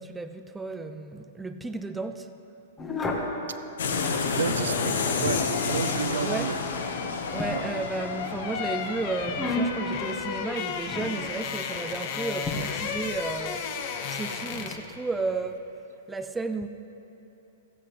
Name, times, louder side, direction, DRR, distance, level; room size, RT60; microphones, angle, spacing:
voice 1, 0.0-2.3 6.2-6.6 7.3-13.7 14.1-15.7 16.1-16.7, right 3 dB, 10° right, 8 dB, 0.6 m, -33 dB
sound 1, 2.8-3.4 4.9-5.7 7.4-8.3 9.3-9.9 10.8-11.2 12.5-12.6, left 2 dB, 20° left, 1.7 m, -32 dB
sound 2, 3.8-10.4, left 4 dB, 70° left, 1.1 m, -30 dB
voice 2, 4.2-6.6 7.5-7.6, right 6 dB, 75° right, 11 dB, 0.6 m, -31 dB
sound 3, 5.2-15.0 15.2-15.4, left 6 dB, 50° left, 1.1 m, -34 dB
15.5 x 15.0 x 3.4 m, 3.0 s
hypercardioid pair, 115°, 0 cm